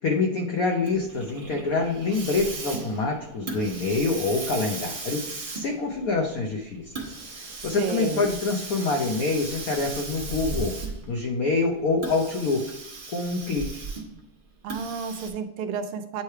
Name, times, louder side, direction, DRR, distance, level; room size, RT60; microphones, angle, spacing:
voice 1, 0.0-5.2 5.5-7.1 7.6-10.7 11.1-12.6 13.1-13.8, left 3 dB, 75° left, 2 dB, 0.7 m, -26 dB
Hiss, 0.9-11.2 11.9-14.2 14.7-15.3, right 3 dB, 40° right, 1.0 m, -37 dB
voice 2, 7.8-8.3 14.6-16.2, right 5 dB, 85° right, 8 dB, 1.6 m, -31 dB
8.6 x 3.2 x 4.5 m, 0.87 s
omnidirectional pair, 2.4 m